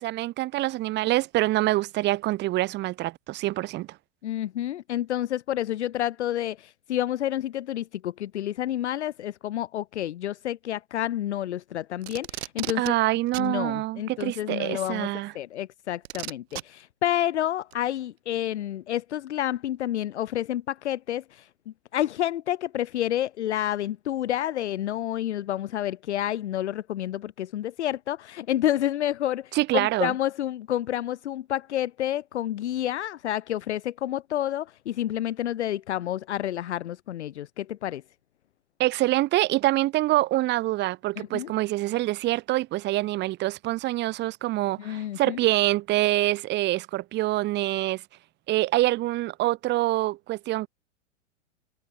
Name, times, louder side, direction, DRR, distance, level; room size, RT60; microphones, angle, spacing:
voice 1, 0.0-3.9 12.8-15.3 29.5-30.1 38.8-48.0 48.5-50.7, right 17 dB, 30° right, 1.3 m, -25 dB
voice 2, 4.2-12.9 13.4-21.5 21.9-38.0 41.2-41.5 44.8-45.4, left 12 dB, 65° left, 1.3 m, -29 dB
Packing tape duct tape, 12.0-12.9 13.3-13.5 14.8-14.9 16.0-16.6 17.7-17.8, right 15 dB, 55° right, 2.7 m, -35 dB
figure-of-eight pair, 105°, 37 cm